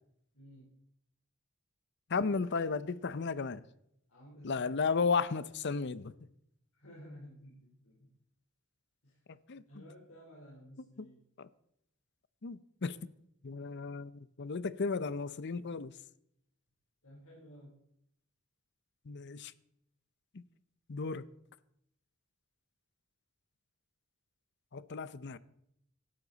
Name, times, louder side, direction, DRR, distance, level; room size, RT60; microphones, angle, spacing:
voice 1, 0.3-0.7 2.1-2.7 4.1-4.7 6.7-8.1 9.0-9.2 9.6-11.2 17.0-17.8, equal, 85° left, 3.7 m, -54 dB
voice 2, 2.1-3.6 4.4-6.3 9.3-9.9 11.0-11.1 11.4-11.5 12.4-13.1 13.4-16.0 19.0-19.5 20.3-20.4 20.9-21.3 24.7-25.4, left 4 dB, 55° left, 0.6 m, -34 dB
17.0 x 12.5 x 4.0 m
head